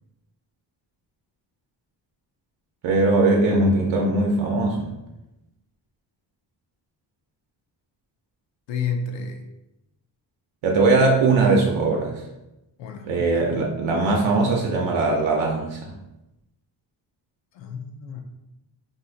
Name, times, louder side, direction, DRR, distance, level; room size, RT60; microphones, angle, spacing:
voice 1, 2.8-5.0 10.6-12.2 13.0-15.9, right 3 dB, 85° right, 0 dB, 0.6 m, -20 dB
voice 2, 8.7-9.4 12.8-13.4 17.5-18.2, left 5 dB, 70° left, 3 dB, 0.5 m, -31 dB
2.6 x 2.4 x 3.8 m, 0.93 s
wide cardioid pair, 145°, 45 cm